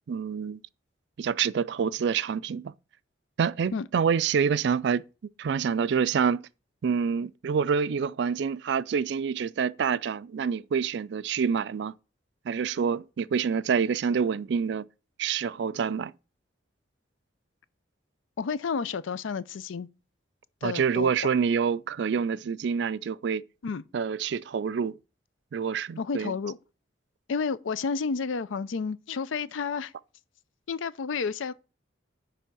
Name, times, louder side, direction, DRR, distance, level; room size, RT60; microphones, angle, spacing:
voice 1, 0.1-0.6 1.2-2.7 3.4-5.0 5.4-6.4 6.8-12.0 12.5-14.8 15.2-16.1 20.6-23.4 23.9-25.0 25.5-26.3, right 6 dB, 60° right, 0.3 m, -27 dB
voice 2, 18.4-19.9 20.6-21.3 23.6-23.8 26.0-26.6 27.3-29.9 30.7-31.5, left 5 dB, 80° left, 0.5 m, -31 dB
9.9 x 3.4 x 6.0 m
head